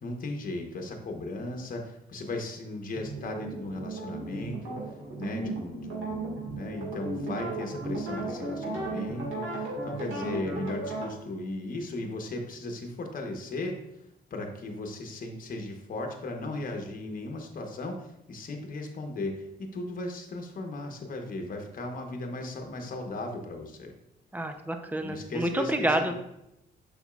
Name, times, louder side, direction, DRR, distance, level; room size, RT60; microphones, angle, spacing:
voice 1, 0.0-4.7 5.2-23.9 25.0-26.1, left 2 dB, 45° left, 3 dB, 1.1 m, -37 dB
sound 1, 2.9-11.1, right 2 dB, 75° right, 2.0 m, -35 dB
voice 2, 24.3-26.1, right 1 dB, 10° right, 6 dB, 0.7 m, -28 dB
7.0 x 5.4 x 2.5 m, 0.84 s
cardioid pair, 90°, 20 cm